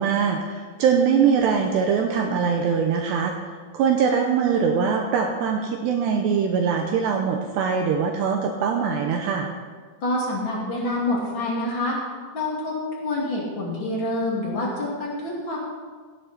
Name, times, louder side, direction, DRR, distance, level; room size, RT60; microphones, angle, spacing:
voice 1, 0.0-3.3 3.7-9.5, right 6 dB, 90° right, 3 dB, 2.4 m, -22 dB
voice 2, 10.0-12.0 12.3-15.6, left 2 dB, 35° left, -4 dB, 2.1 m, -27 dB
16.5 x 9.0 x 4.4 m, 1.5 s
omnidirectional pair, 5.8 m